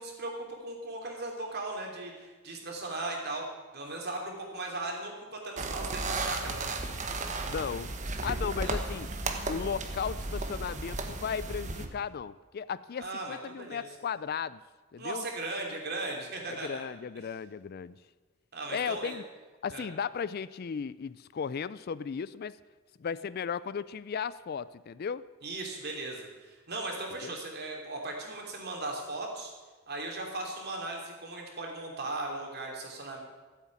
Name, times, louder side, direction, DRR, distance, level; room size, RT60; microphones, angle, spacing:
voice 1, 0.0-3.5 3.7-6.7 8.6-8.8 13.0-13.8 15.0-16.8 18.5-19.2 19.7-19.9 25.4-29.5 29.9-33.2, right 2 dB, 50° right, 0 dB, 3.1 m, -37 dB
sound 1, 5.6-11.9, right 2 dB, 35° right, 1.2 m, -34 dB
voice 2, 7.5-9.1 9.5-14.6 14.9-15.3 16.5-18.0 18.7-19.2 19.6-22.6 23.0-25.2 27.2-27.3, left 6 dB, 50° left, 17 dB, 0.4 m, -35 dB
14.0 x 8.2 x 8.7 m, 1.3 s
head